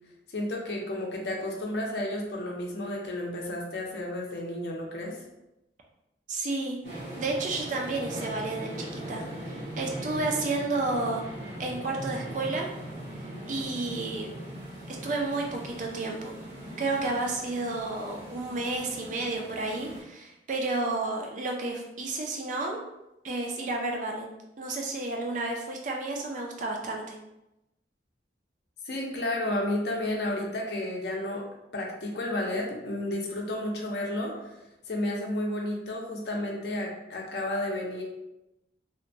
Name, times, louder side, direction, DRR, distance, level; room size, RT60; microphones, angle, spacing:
voice 1, 0.3-5.2 28.9-31.4 31.7-34.5 34.9-38.0, left 1 dB, 65° left, -1 dB, 0.5 m, -32 dB
voice 2, 6.3-6.8 7.2-9.2 9.8-11.2 11.6-12.7 13.5-14.3 14.9-16.3 16.8-22.8 23.2-24.3 24.6-27.2, right 2 dB, 45° right, 1 dB, 0.4 m, -31 dB
sound 1, 6.8-20.0, right 1 dB, 65° right, 0.9 m, -40 dB
2.8 x 2.1 x 2.6 m, 0.93 s
head